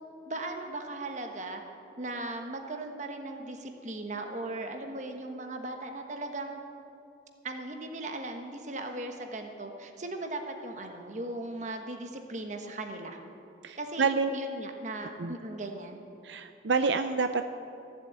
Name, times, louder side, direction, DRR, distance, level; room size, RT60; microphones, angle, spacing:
voice 1, 0.3-1.6 2.0-6.6 7.4-13.2 13.8-14.1 14.3-16.0, right 2 dB, 40° right, 4 dB, 1.3 m, -38 dB
voice 2, 13.6-14.3 15.2-15.3 16.2-17.5, right 4 dB, 75° right, 9 dB, 0.5 m, -28 dB
15.5 x 7.7 x 8.9 m, 2.7 s
head